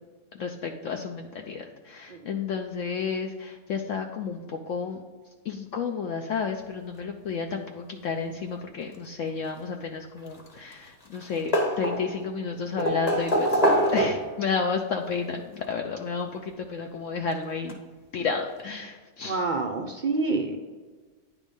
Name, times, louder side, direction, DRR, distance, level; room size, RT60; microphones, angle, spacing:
voice 1, 0.3-5.0 5.4-17.8 18.1-19.4, left 5 dB, 65° left, 3 dB, 0.9 m, -31 dB
sound 1, 10.2-10.9 11.1-12.3 12.8-14.5 15.6-15.7 17.3-17.4 17.7-17.8, equal, 30° left, 1.3 m, -24 dB
voice 2, 19.2-20.6, right 3 dB, 70° right, 3 dB, 0.4 m, -27 dB
9.9 x 3.6 x 5.3 m, 1.4 s
omnidirectional pair, 1.6 m